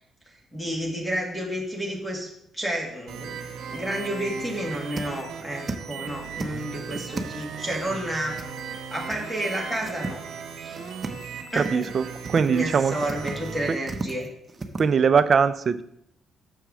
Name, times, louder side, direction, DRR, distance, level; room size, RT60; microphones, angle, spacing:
voice 1, 0.5-8.4 8.9-10.2 10.6-10.8 11.5-11.9 12.5-14.3, right 1 dB, 5° left, -1 dB, 1.9 m, -31 dB
sound 1, 2.8-3.2 3.6-3.7 4.1-4.2 4.5-5.9 6.2-7.6 8.3-8.8 9.1-9.2 9.6-10.4 10.7-11.2 11.5-11.9 12.2-12.6 13.0-14.8, right 3 dB, 30° right, 0.9 m, -35 dB
sound 2, 3.1-13.7, right 6 dB, 75° right, 1.0 m, -37 dB
voice 2, 11.5-12.9 14.8-15.8, right 6 dB, 45° right, 13 dB, 0.5 m, -21 dB
6.9 x 4.6 x 6.2 m, 0.75 s
cardioid pair, 90°, 0 cm